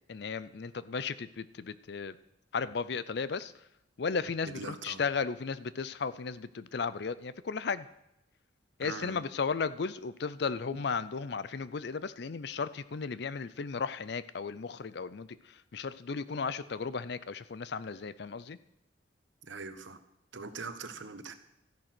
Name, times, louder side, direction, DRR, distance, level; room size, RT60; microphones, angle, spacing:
voice 1, 0.1-2.2 2.5-3.7 4.0-7.9 8.8-18.6, left 5 dB, 60° left, 16 dB, 0.5 m, -35 dB
voice 2, 4.5-5.0 8.8-9.2 19.4-20.0 20.3-21.3, right 4 dB, 75° right, 10 dB, 1.2 m, -42 dB
13.5 x 10.5 x 6.1 m, 0.84 s
head